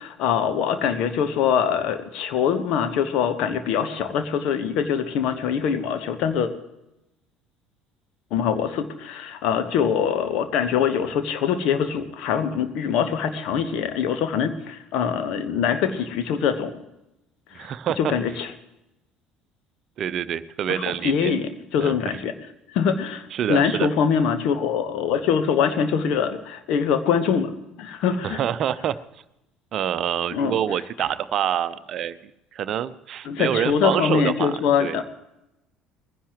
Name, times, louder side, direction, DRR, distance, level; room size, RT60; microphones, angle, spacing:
voice 1, 0.0-6.5 8.3-16.8 17.5-18.5 20.7-22.3 22.7-28.4 30.3-30.5 33.2-35.0, left 7 dB, 60° left, 9 dB, 1.3 m, -23 dB
voice 2, 17.5-18.4 20.0-21.3 21.8-22.2 23.3-23.9 28.2-28.9 29.7-34.5 34.8-35.0, right 9 dB, 50° right, 15 dB, 0.7 m, -26 dB
21.0 x 16.0 x 3.1 m, 0.90 s
figure-of-eight pair, 60°, 0 cm